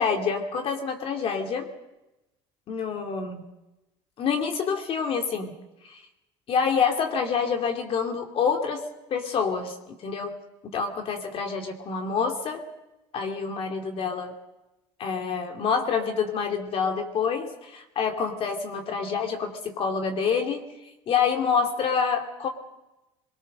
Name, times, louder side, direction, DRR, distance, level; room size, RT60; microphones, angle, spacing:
voice 1, 0.0-1.7 2.7-3.4 4.2-5.5 5.9-6.0 6.5-8.8 9.1-9.7 10.0-10.4 10.7-12.6 13.1-14.3 15.0-20.6 21.1-22.5, left 6 dB, 50° left, 4 dB, 2.6 m, -27 dB
22.5 x 22.0 x 6.5 m, 0.97 s
cardioid pair, 115°, 13 cm